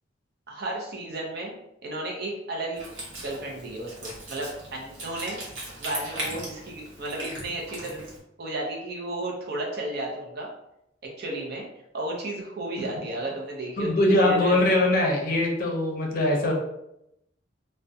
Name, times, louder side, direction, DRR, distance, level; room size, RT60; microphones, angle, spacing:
voice 1, 0.5-1.5 1.8-2.8 3.2-5.4 5.8-8.1 8.4-10.5 11.0-11.7 11.9-14.6, right 1 dB, 55° right, -2 dB, 0.6 m, -33 dB
Wind instrument woodwind instrument, 2.7-8.2, right 1 dB, 80° right, 0.9 m, -39 dB
voice 2, 13.8-16.5, left 1 dB, 50° left, 0 dB, 0.5 m, -22 dB
2.3 x 2.1 x 2.6 m, 0.83 s
head